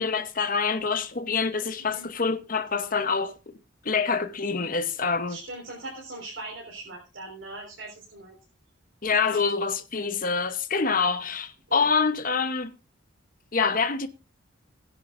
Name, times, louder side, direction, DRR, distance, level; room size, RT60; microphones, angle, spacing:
voice 1, 0.0-3.3 3.8-5.4 9.0-12.8 13.5-14.1, left 5 dB, 45° left, 1.0 m, -26 dB
voice 2, 5.3-8.4 9.3-9.5 11.7-11.8, right 2 dB, 75° right, 4.0 m, -40 dB
20.0 x 10.0 x 2.6 m
head